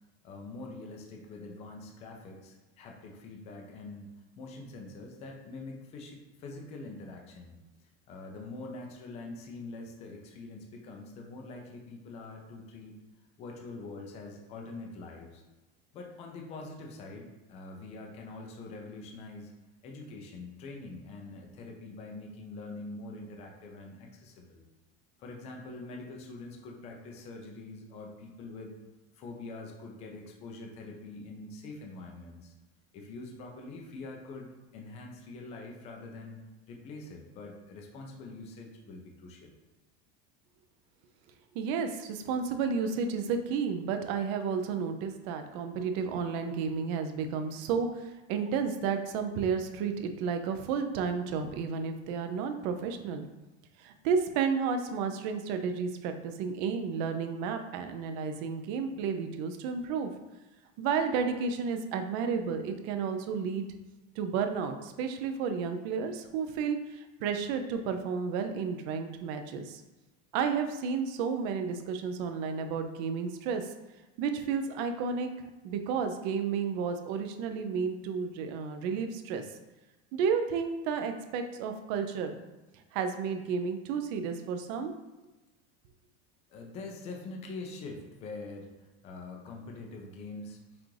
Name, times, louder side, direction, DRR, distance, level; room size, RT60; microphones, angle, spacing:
voice 1, 0.2-4.1 4.4-13.0 13.4-15.4 15.9-19.5 19.8-24.6 25.2-28.8 29.2-32.5 32.9-39.5 86.5-88.7 89.0-90.6, left 3 dB, 20° left, 1 dB, 0.4 m, -44 dB
voice 2, 41.5-53.3 53.8-60.1 60.8-63.7 64.2-69.8 70.3-73.7 74.2-75.3 75.6-79.4 80.1-82.4 82.9-84.9, right 6 dB, 40° right, 6 dB, 0.4 m, -32 dB
5.8 x 2.4 x 3.2 m, 1.1 s
supercardioid pair, 165°, 34 cm